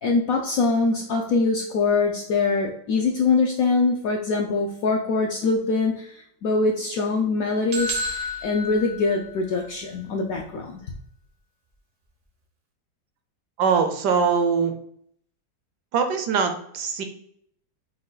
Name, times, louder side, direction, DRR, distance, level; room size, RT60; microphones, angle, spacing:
voice 1, 0.0-10.8, left 4 dB, 75° left, 1 dB, 0.8 m, -23 dB
sound 1, 7.7-9.7, left 1 dB, 55° right, 0.6 m, -31 dB
voice 2, 13.6-14.7 15.9-17.0, right 6 dB, 70° right, 6 dB, 1.1 m, -22 dB
4.9 x 2.3 x 3.8 m, 0.66 s
omnidirectional pair, 2.0 m